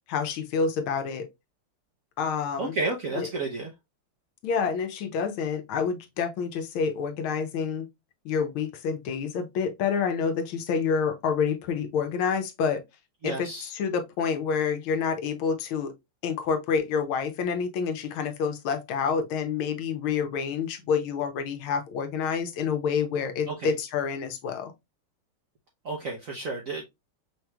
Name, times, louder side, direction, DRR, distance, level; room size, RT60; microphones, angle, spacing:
voice 1, 0.1-1.3 2.2-2.8 3.2-3.3 4.4-7.9 8.2-12.8 13.2-15.9 16.2-24.7, left 6 dB, 75° left, 1.5 m, -28 dB
voice 2, 2.6-3.7 13.2-13.7 23.5-23.7 25.8-26.8, right 3 dB, 65° right, 0.8 m, -31 dB
5.4 x 3.1 x 2.2 m
omnidirectional pair, 2.3 m